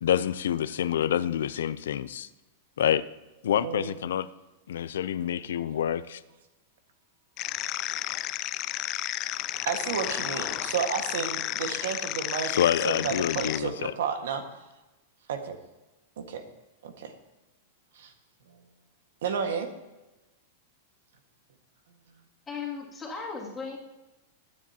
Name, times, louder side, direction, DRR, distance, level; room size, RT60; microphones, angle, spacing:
voice 1, 0.0-2.3 2.8-3.0 3.4-4.3 4.7-6.2 12.5-13.9, left 10 dB, 90° left, 15 dB, 0.5 m, -27 dB
voice 2, 3.6-4.0 9.6-14.5 15.3-15.6 16.2-16.4 16.8-17.1 17.9-18.1 19.2-19.7, right 6 dB, 75° right, 6 dB, 1.6 m, -32 dB
sound 1, 7.4-13.6, left 15 dB, 30° left, 0.3 m, -32 dB
voice 3, 22.5-23.8, left 5 dB, 10° left, -4 dB, 2.5 m, -36 dB
20.5 x 9.8 x 2.9 m, 1.1 s
supercardioid pair, 170°, 0 cm